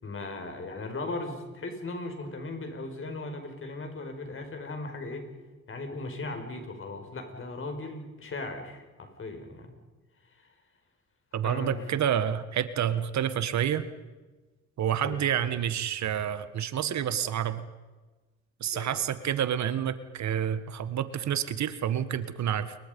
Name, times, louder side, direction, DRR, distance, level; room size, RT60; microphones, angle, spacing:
voice 1, 0.0-5.2 5.7-9.7 10.3-10.5 11.4-11.8 15.0-15.3 18.6-19.0, left 2 dB, 45° left, 5 dB, 5.6 m, -37 dB
voice 2, 11.3-13.9 14.8-17.6 18.6-22.8, right 9 dB, 65° right, 12 dB, 1.4 m, -29 dB
29.0 x 22.5 x 5.4 m, 1.2 s
cardioid pair, 90°, 30 cm